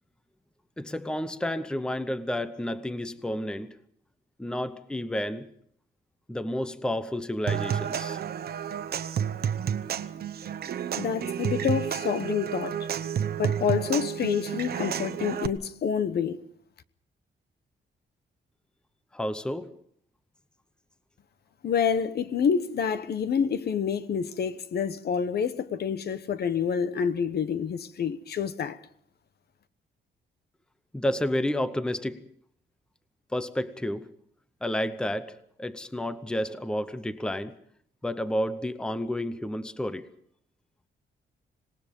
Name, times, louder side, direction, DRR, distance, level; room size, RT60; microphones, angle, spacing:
voice 1, 0.8-3.8 4.4-5.5 6.3-8.2 19.1-19.8 30.9-32.3 33.3-34.1 34.6-37.5 38.0-40.1, left 1 dB, 5° left, 0.8 m, -31 dB
Human voice / Acoustic guitar / Percussion, 7.5-15.5, right 8 dB, 55° right, 0.9 m, -30 dB
voice 2, 11.0-12.8 13.4-16.4 21.6-28.8, left 7 dB, 55° left, 1.0 m, -28 dB
26.0 x 19.0 x 5.3 m
wide cardioid pair, 165°, 20 cm